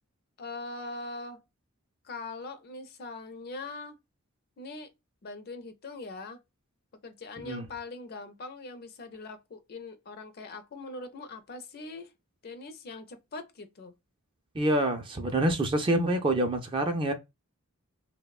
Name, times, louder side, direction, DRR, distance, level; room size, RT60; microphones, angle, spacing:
voice 1, 0.4-1.4 2.0-4.0 4.6-4.9 5.2-6.4 7.0-12.1 12.4-13.9, left 3 dB, 45° left, 0.4 m, -41 dB
voice 2, 14.5-17.1, right 1 dB, 20° right, 0.3 m, -26 dB
2.9 x 2.1 x 2.2 m
head